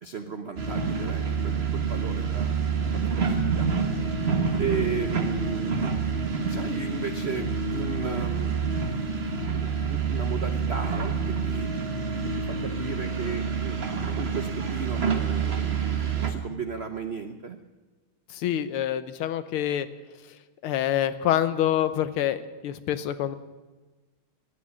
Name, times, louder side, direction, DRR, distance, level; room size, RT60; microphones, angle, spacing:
voice 1, 0.0-2.6 2.9-3.7 4.6-5.8 6.5-8.5 9.3-11.7 12.2-17.6, right 6 dB, 80° right, 7 dB, 0.5 m, -35 dB
sound 1, 0.6-16.3, right 5 dB, 35° right, 1.3 m, -27 dB
voice 2, 18.3-19.9 20.6-23.3, left 11 dB, 85° left, 13 dB, 1.7 m, -26 dB
14.0 x 9.8 x 9.5 m, 1.3 s
omnidirectional pair, 2.3 m